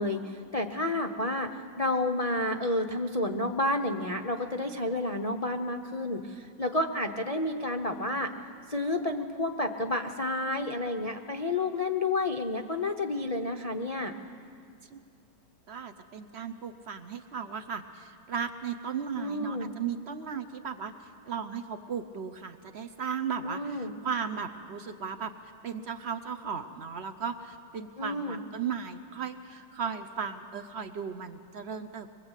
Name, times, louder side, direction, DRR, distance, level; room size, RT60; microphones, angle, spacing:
voice 1, 0.0-8.3 8.7-14.1 19.2-19.7 23.4-23.9 28.0-28.4, left 2 dB, 65° left, 4 dB, 0.3 m, -30 dB
voice 2, 15.7-20.9 21.2-32.1, right 6 dB, 85° right, 9 dB, 0.5 m, -36 dB
23.5 x 22.5 x 8.2 m, 2.5 s
omnidirectional pair, 2.2 m